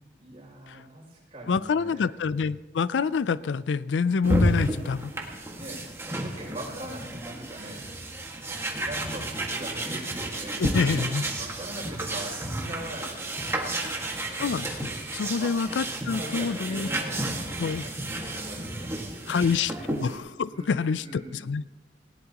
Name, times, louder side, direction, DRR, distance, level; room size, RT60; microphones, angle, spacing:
voice 1, 0.2-2.1 5.6-8.0 8.2-10.6 11.3-13.9 15.1-19.8 20.5-21.4, right 1 dB, 35° right, -3 dB, 6.4 m, -42 dB
voice 2, 1.5-5.1 10.6-11.3 14.4-16.9 17.6-17.8 19.3-21.6, left 5 dB, 85° left, 17 dB, 0.4 m, -27 dB
sound 1, 4.2-20.2, right 1 dB, 15° right, 1.8 m, -32 dB
19.5 x 17.5 x 3.0 m, 1.2 s
head